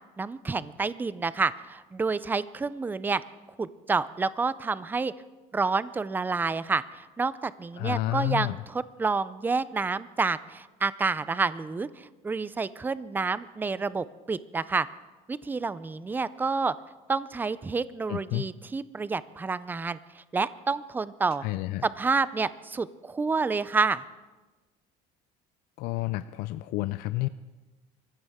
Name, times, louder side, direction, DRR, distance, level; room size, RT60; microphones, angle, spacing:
voice 1, 0.2-3.2 3.6-5.1 5.5-14.9 15.3-16.7 17.1-21.4 21.8-24.0, right 4 dB, 10° right, 16 dB, 0.4 m, -29 dB
voice 2, 7.8-8.6 18.1-18.5 21.4-21.8 25.8-27.3, left 17 dB, 65° left, 13 dB, 0.4 m, -30 dB
25.0 x 14.5 x 3.6 m, 1.2 s
cardioid pair, 135°, 16 cm